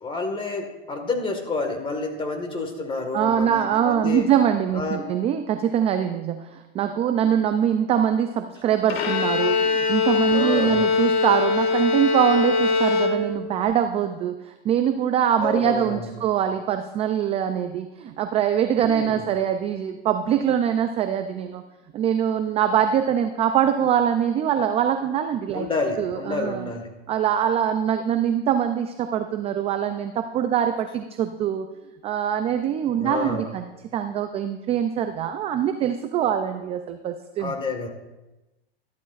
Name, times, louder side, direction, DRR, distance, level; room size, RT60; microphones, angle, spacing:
voice 1, 0.0-4.3 4.7-5.1 10.3-10.9 15.4-16.1 18.8-19.2 25.5-26.9 33.0-33.5 37.4-37.9, left 3 dB, 15° left, 4 dB, 1.6 m, -29 dB
voice 2, 3.1-21.6 21.9-25.7 26.0-26.7 27.1-31.7 32.0-33.7 33.9-37.5, right 9 dB, 20° right, 8 dB, 0.3 m, -23 dB
Bowed string instrument, 8.9-13.6, left 4 dB, 65° left, 1.8 m, -22 dB
13.0 x 12.0 x 2.5 m, 1.0 s
supercardioid pair, 130°, 33 cm